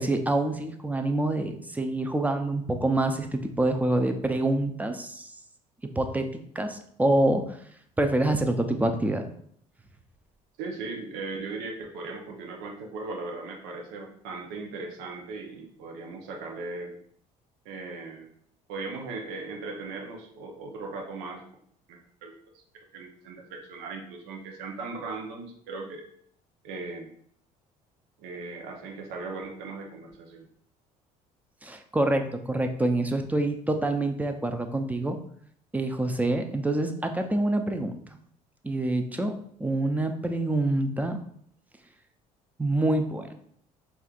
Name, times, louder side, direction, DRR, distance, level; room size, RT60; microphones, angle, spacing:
voice 1, 0.0-5.3 5.8-7.6 8.0-9.2 31.6-35.2 35.7-38.0 38.6-39.3 39.6-41.2 42.6-43.3, right 2 dB, 10° right, 6 dB, 0.5 m, -26 dB
voice 2, 10.6-16.9 17.6-18.3 18.7-21.4 21.9-22.4 22.9-26.0 26.6-27.1 28.2-30.5, right 3 dB, 80° right, 1 dB, 0.7 m, -38 dB
4.2 x 2.4 x 2.4 m, 0.65 s
supercardioid pair, 70°, 17 cm